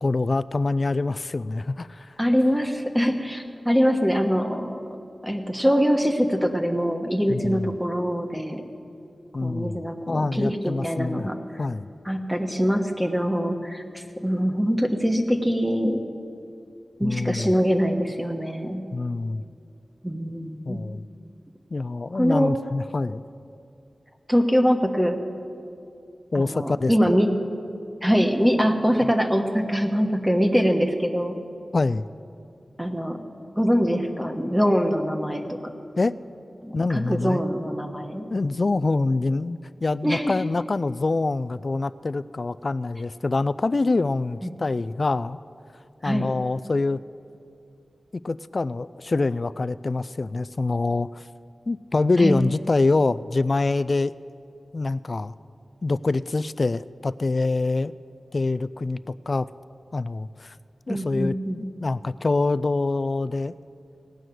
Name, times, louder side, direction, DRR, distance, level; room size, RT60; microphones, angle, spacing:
voice 1, 0.0-2.1 7.3-7.7 9.3-11.3 11.6-11.9 17.0-17.5 18.9-19.4 20.7-21.0 21.7-23.2 26.3-26.9 29.0-29.1 31.7-32.1 36.0-36.2 36.7-37.4 38.3-45.4 46.0-47.0 48.2-51.2 51.7-54.1 54.7-55.3 55.8-57.9 58.3-59.5 59.9-60.5 60.9-63.5, left 3 dB, 45° left, 17 dB, 0.3 m, -25 dB
voice 2, 2.2-4.8 5.2-8.6 9.4-11.4 12.0-16.0 17.0-18.8 20.0-20.8 22.1-22.5 24.3-25.2 26.3-27.3 28.0-31.4 32.8-33.2 33.6-35.6 36.6-38.3 40.0-40.3 44.4-44.5 46.0-46.3 52.2-52.4 60.9-61.6, equal, 5° right, 4 dB, 1.2 m, -23 dB
17.5 x 6.4 x 9.1 m, 2.6 s
wide cardioid pair, 95°, 0 cm